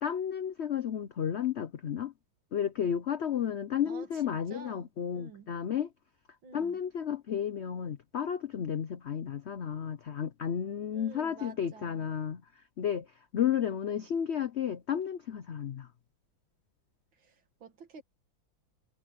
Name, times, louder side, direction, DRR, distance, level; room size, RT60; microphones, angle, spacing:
voice 1, 0.0-2.1 2.5-5.9 6.5-12.4 12.8-13.1 13.3-15.9, left 8 dB, 80° left, 0.6 m, -32 dB
voice 2, 3.9-5.5 6.4-6.8 10.9-12.1 13.6-14.1 17.1-18.0, right 4 dB, 80° right, 2.7 m, -50 dB
omnidirectional pair, 2.1 m